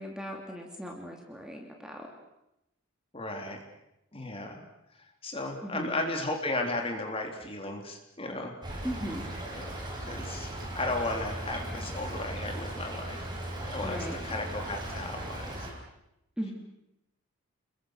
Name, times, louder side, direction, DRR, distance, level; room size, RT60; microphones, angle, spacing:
voice 1, 0.0-2.1 5.6-5.9 8.8-9.3 13.8-14.2 16.4-16.5, equal, 5° right, 1 dB, 2.7 m, -38 dB
voice 2, 3.1-3.6 4.1-4.6 5.2-8.5 9.5-13.3 13.6-15.7, left 2 dB, 25° left, 3 dB, 3.4 m, -35 dB
Stream / Trickle dribble, 8.6-15.7, right 1 dB, 20° right, 5.6 m, -38 dB
28.0 x 22.0 x 6.5 m, 0.85 s
head